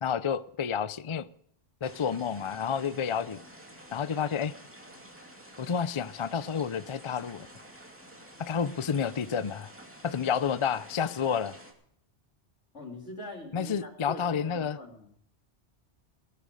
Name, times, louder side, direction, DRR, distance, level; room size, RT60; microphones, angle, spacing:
voice 1, 0.0-1.3 1.8-3.4 3.9-4.5 5.6-7.5 8.4-9.7 10.0-11.6 13.5-14.8, left 7 dB, 40° left, 0.4 m, -30 dB
sound 1, 1.8-11.7, equal, 10° right, 2.5 m, -50 dB
voice 2, 12.7-15.1, left 2 dB, 75° left, 3.5 m, -43 dB
18.0 x 11.0 x 5.2 m
omnidirectional pair, 1.2 m